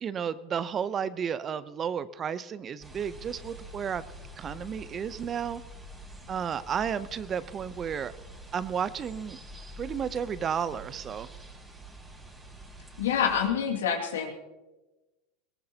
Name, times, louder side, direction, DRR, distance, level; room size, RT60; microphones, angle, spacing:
voice 1, 0.0-4.0 4.4-5.6 6.3-8.1 8.5-9.4 9.8-11.3, right 7 dB, 35° right, 16 dB, 0.7 m, -32 dB
sound 1, 2.8-13.5, equal, 15° right, 3.6 m, -46 dB
voice 2, 13.0-14.3, left 8 dB, 80° left, 2 dB, 2.3 m, -27 dB
21.0 x 18.5 x 2.9 m, 1.1 s
hypercardioid pair, 90°, 0 cm